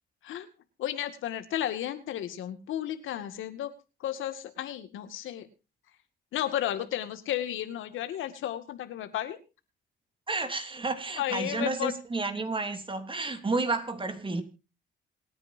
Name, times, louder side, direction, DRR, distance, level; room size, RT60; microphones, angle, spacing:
voice 1, 0.8-3.7 4.0-5.5 6.3-9.4 11.2-11.9, left 11 dB, 80° left, 2.1 m, -33 dB
voice 2, 10.3-14.4, right 3 dB, 25° right, 3.0 m, -31 dB
27.5 x 9.8 x 2.7 m
cardioid pair, 90°, 20 cm